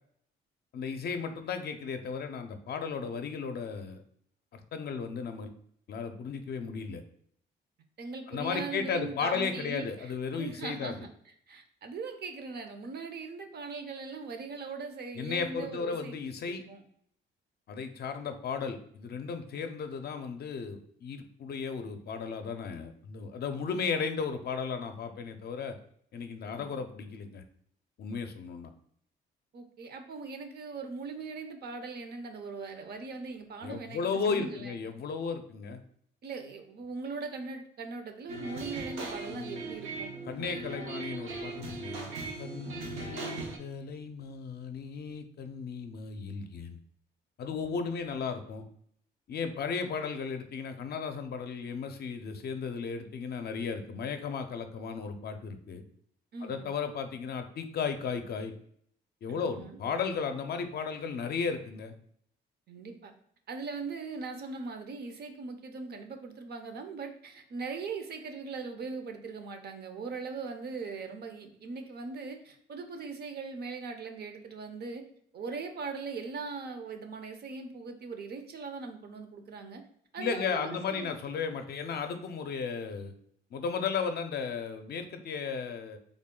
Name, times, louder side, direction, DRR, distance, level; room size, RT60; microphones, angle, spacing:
voice 1, 0.7-4.0 4.5-5.5 5.9-7.0 8.3-11.1 15.1-16.6 17.7-25.8 26.1-27.4 28.0-28.7 33.6-35.8 40.3-42.1 42.4-46.8 47.4-48.6 49.3-55.8 56.4-58.5 59.2-61.9 80.2-83.1 83.5-86.0, left 5 dB, 55° left, 7 dB, 0.5 m, -35 dB
voice 2, 8.0-11.1 11.5-16.2 16.5-16.8 26.4-26.8 29.5-34.8 36.2-40.1 56.3-56.7 59.3-59.8 62.7-63.1 63.5-75.0 75.3-79.8 80.1-81.1, right 4 dB, 55° right, 6 dB, 0.6 m, -40 dB
sound 1, 38.3-43.6, right 3 dB, 90° right, 0.8 m, -39 dB
3.5 x 2.2 x 3.6 m, 0.65 s
cardioid pair, 90°, 20 cm